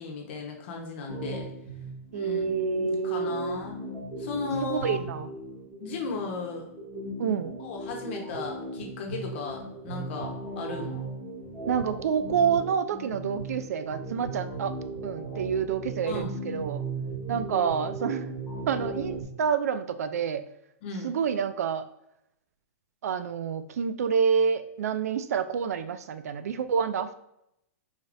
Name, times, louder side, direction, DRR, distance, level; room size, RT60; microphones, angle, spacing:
voice 1, 0.0-1.5 2.1-2.4 2.9-3.8 4.2-5.0 5.8-6.7 7.6-11.0 16.1-16.4 20.8-21.2, left 4 dB, 45° left, 1 dB, 1.0 m, -36 dB
sound 1, 1.1-19.2, right 2 dB, 5° right, 1.1 m, -37 dB
voice 2, 2.1-3.6 4.6-5.3 7.2-7.6 11.7-14.7 15.0-16.8 17.3-18.3 18.7-20.5 21.0-21.8 23.0-27.2, right 7 dB, 80° right, 12 dB, 0.4 m, -28 dB
5.0 x 2.7 x 2.5 m, 0.81 s
hypercardioid pair, 155°, 8 cm